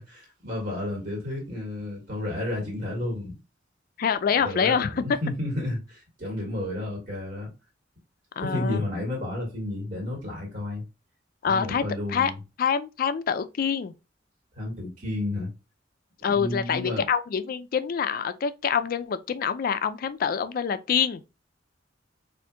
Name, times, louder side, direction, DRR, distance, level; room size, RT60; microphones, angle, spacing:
voice 1, 0.0-3.4 4.4-7.5 8.4-10.8 11.5-12.4 14.6-15.5 16.3-17.0, left 1 dB, 50° right, 1.6 m, -31 dB
voice 2, 4.0-4.9 8.4-8.8 11.4-11.8 12.1-12.3 12.6-13.9 16.2-21.2, left 7 dB, 50° left, 0.3 m, -26 dB
4.3 x 2.5 x 2.2 m
head